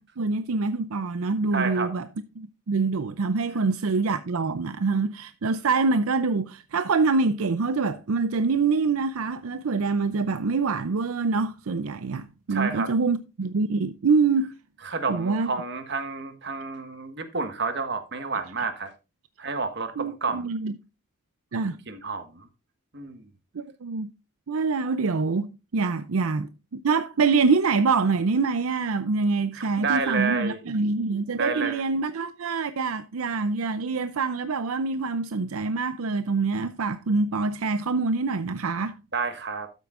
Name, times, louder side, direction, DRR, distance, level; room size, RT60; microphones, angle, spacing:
voice 1, 0.0-2.1 2.4-14.6 15.1-15.5 20.0-20.7 21.5-21.8 23.5-24.1 24.5-38.9, right 4 dB, 75° right, 0.5 m, -25 dB
voice 2, 1.5-1.9 12.5-12.9 14.8-18.9 19.4-20.5 21.9-22.5 22.9-23.3 29.5-30.6 31.3-31.8 39.1-39.7, right 4 dB, 50° right, 1.5 m, -30 dB
12.5 x 8.4 x 2.5 m
head